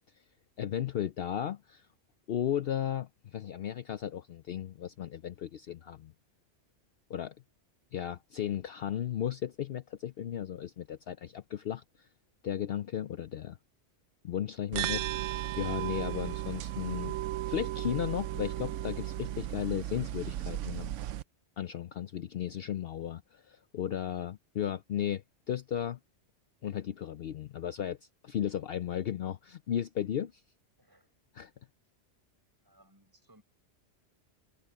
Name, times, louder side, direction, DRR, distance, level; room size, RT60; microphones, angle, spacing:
voice 1, 0.6-1.9 2.3-6.1 7.1-7.3 7.9-12.1 12.4-13.6 14.2-17.1 17.5-20.9 21.6-26.0 26.6-28.0 28.2-30.4 31.3-31.5, left 10 dB, 60° left, 0.8 m, -35 dB
sound 1, 14.7-21.2, right 13 dB, 90° right, 0.9 m, -35 dB
voice 2, 30.8-31.1 32.6-33.4, right 1 dB, 15° right, 5.3 m, -63 dB
omnidirectional pair, 1.2 m